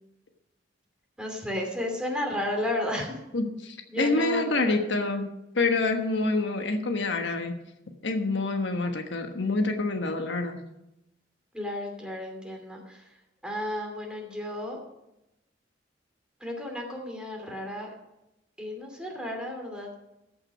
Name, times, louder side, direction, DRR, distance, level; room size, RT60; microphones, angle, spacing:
voice 1, 1.2-3.2 3.9-4.7 8.8-8.9 11.5-13.1 13.4-14.8 16.4-17.9 18.6-19.9, left 1 dB, 5° right, 1 dB, 2.7 m, -33 dB
voice 2, 3.3-5.3 5.5-7.6 8.0-10.6, left 3 dB, 85° left, 5 dB, 1.3 m, -27 dB
14.0 x 6.2 x 6.4 m, 0.90 s
head